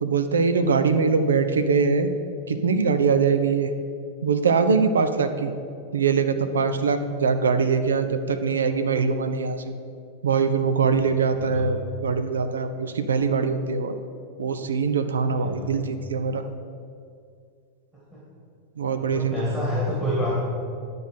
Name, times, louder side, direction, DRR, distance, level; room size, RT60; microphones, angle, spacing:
voice 1, 0.0-2.1 2.5-3.7 4.2-5.5 5.9-9.6 10.2-14.0 14.4-16.5 18.8-19.4, right 5 dB, 70° right, 9 dB, 0.6 m, -22 dB
voice 2, 15.3-15.7 18.1-18.2 19.0-20.4, left 1 dB, 10° right, -7 dB, 2.3 m, -28 dB
10.0 x 4.3 x 6.5 m, 2.3 s
figure-of-eight pair, 90°, 0 cm